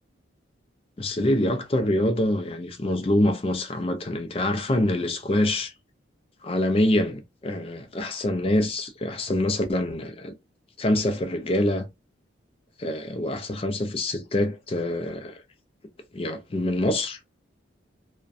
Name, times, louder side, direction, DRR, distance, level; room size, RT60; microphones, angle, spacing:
voice 1, 1.0-5.7 6.4-10.3 10.8-11.8 12.8-15.4 16.1-17.2, left 1 dB, 30° left, 0.4 m, -25 dB
2.5 x 2.2 x 2.3 m
head